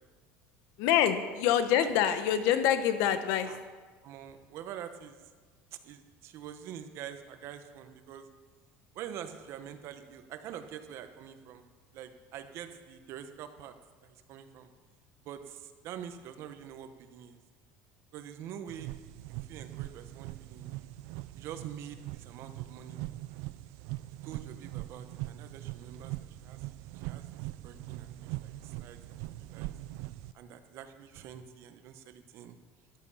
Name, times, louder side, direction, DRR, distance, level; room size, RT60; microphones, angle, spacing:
voice 1, 0.8-3.5, left 10 dB, 75° left, 10 dB, 1.1 m, -26 dB
voice 2, 4.0-5.2 5.8-8.2 8.9-11.6 11.9-13.7 14.0-14.7 15.2-17.4 18.1-18.9 19.3-20.7 21.3-23.0 24.2-26.1 26.4-26.6 26.9-27.2 27.6-29.0 29.3-29.7 30.3-32.6, right 9 dB, 55° right, 8 dB, 1.2 m, -45 dB
sound 1, 18.7-30.3, right 17 dB, 75° right, 0.5 m, -42 dB
13.5 x 11.5 x 5.7 m, 1.4 s
cardioid pair, 140°, 5 cm